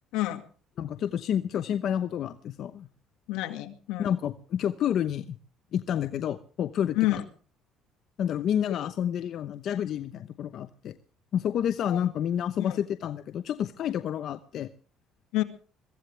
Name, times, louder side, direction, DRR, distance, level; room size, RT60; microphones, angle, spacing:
voice 1, 0.8-2.9 4.0-5.4 5.7-7.2 8.2-11.0 11.3-14.7, left 9 dB, 60° left, 10 dB, 0.9 m, -29 dB
voice 2, 3.3-4.2 7.0-7.2 8.7-8.8 11.9-12.0 12.6-12.8 15.3-15.4, left 17 dB, 85° left, 8 dB, 1.9 m, -29 dB
23.0 x 15.0 x 3.4 m, 0.40 s
cardioid pair, 100°, 0 cm